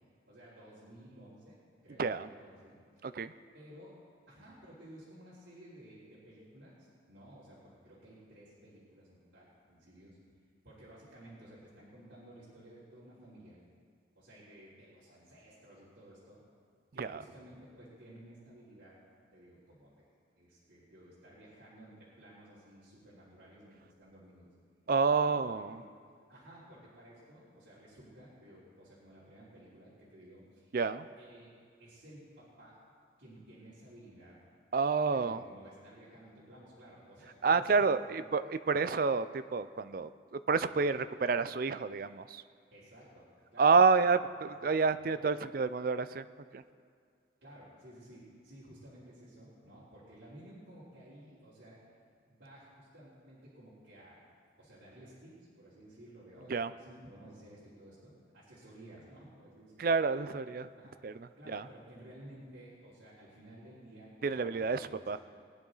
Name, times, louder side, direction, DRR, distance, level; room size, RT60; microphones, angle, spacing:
voice 1, 0.3-3.1 3.5-3.9 4.3-6.8 7.1-10.2 10.6-13.6 14.1-16.4 16.9-19.0 19.3-20.1 20.4-24.5 25.2-25.9 26.3-30.8 31.2-31.5 31.8-32.8 33.2-34.4 35.1-38.2 40.7-40.8 42.7-44.1 44.6-44.7 45.0-45.3 45.6-45.7 47.4-51.8 52.3-54.2 54.6-59.9 60.8-60.9 61.4-65.2, right 1 dB, 70° right, -11 dB, 3.4 m, -55 dB
voice 2, 2.0-2.3 3.0-3.3 17.0-17.2 24.9-25.8 30.7-31.1 34.7-35.4 37.4-42.4 43.6-46.3 46.5-46.6 56.5-56.7 59.8-60.7 61.0-61.7 64.2-65.2, right 4 dB, 50° right, 13 dB, 0.4 m, -29 dB
21.0 x 9.7 x 3.9 m, 2.2 s
head